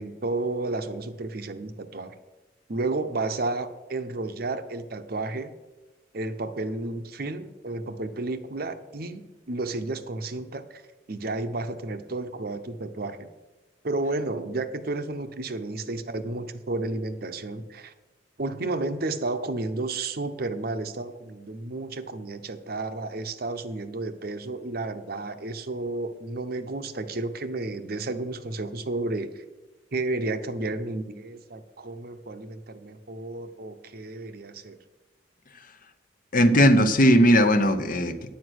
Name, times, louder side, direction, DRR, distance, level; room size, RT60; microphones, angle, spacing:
voice 1, 0.0-2.1 2.7-5.5 6.1-10.8 11.1-13.3 13.8-17.9 18.4-29.4 29.9-34.8, right 2 dB, 55° right, 10 dB, 0.8 m, -32 dB
voice 2, 36.3-38.3, equal, 45° left, 10 dB, 0.8 m, -18 dB
9.3 x 8.9 x 6.3 m, 1.2 s
head